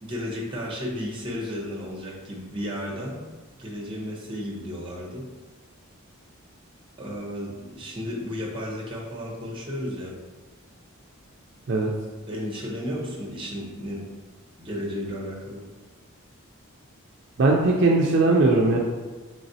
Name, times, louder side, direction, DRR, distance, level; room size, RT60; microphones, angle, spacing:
voice 1, 0.0-3.2 3.6-5.2 7.0-10.2 12.3-14.1 14.6-15.6, equal, 25° right, -2 dB, 0.7 m, -33 dB
voice 2, 17.4-18.8, right 2 dB, 55° right, -1 dB, 0.4 m, -19 dB
4.0 x 3.3 x 2.7 m, 1.3 s
head